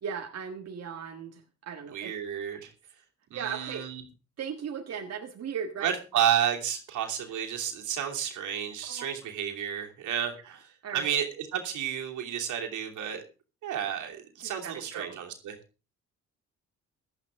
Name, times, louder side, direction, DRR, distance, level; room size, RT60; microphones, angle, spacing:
voice 1, 0.0-2.1 3.3-3.9 4.4-5.9 8.9-9.1 10.4-10.6 10.8-11.1 14.4-15.2, right 7 dB, 55° right, 3 dB, 1.7 m, -37 dB
voice 2, 1.9-2.7 3.3-4.0 5.8-13.2 13.6-15.6, right 9 dB, 80° right, 3 dB, 2.9 m, -31 dB
16.0 x 11.5 x 3.7 m, 0.33 s
cardioid pair, 90°, 30 cm